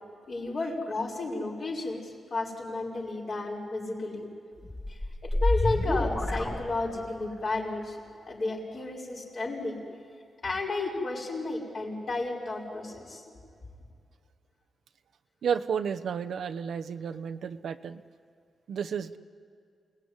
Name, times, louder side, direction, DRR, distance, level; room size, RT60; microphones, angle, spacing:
voice 1, 0.3-4.3 5.2-8.0 8.3-9.8 10.4-13.2, left 2 dB, 55° left, -2 dB, 5.7 m, -32 dB
sound 1, 4.6-7.3, left 1 dB, 25° left, 3.0 m, -28 dB
voice 2, 15.4-18.0 18.7-19.2, right 7 dB, 75° right, 8 dB, 0.9 m, -32 dB
28.0 x 19.5 x 9.8 m, 2.3 s
cardioid pair, 90°, 0 cm